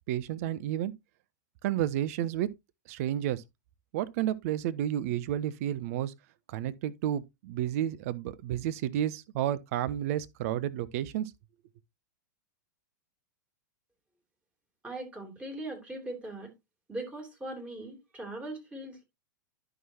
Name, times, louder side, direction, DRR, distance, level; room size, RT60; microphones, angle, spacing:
voice 1, 0.1-0.9 1.6-2.5 2.9-3.4 3.9-6.1 6.5-11.3, right 11 dB, 50° right, 0.6 m, -31 dB
voice 2, 14.8-16.5 16.9-19.0, right 1 dB, 10° right, 3.1 m, -40 dB
11.0 x 5.8 x 2.8 m
figure-of-eight pair, 95°, 10 cm